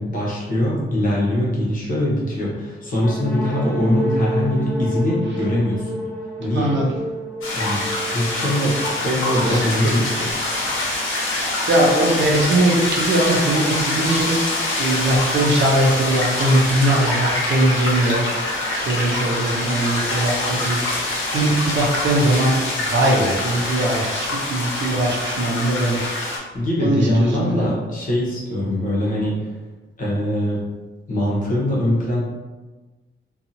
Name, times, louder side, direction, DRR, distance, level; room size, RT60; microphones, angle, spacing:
voice 1, 0.0-5.9 6.4-6.8 7.5-7.8 8.1-8.8 9.0-10.3 26.5-29.5 30.0-30.6 31.1-32.2, left 1 dB, 40° left, -6 dB, 1.0 m, -22 dB
sound 1, 3.0-10.7, equal, 5° left, 1.4 m, -29 dB
voice 2, 6.5-6.9 9.4-9.7 10.5-10.9 11.3-18.2 18.7-26.1 26.8-27.6, right 1 dB, 60° right, -2 dB, 0.6 m, -21 dB
sound 2, 7.4-26.4, left 2 dB, 75° left, 0.8 m, -25 dB
2.7 x 2.4 x 2.7 m, 1.2 s
wide cardioid pair, 140°, 21 cm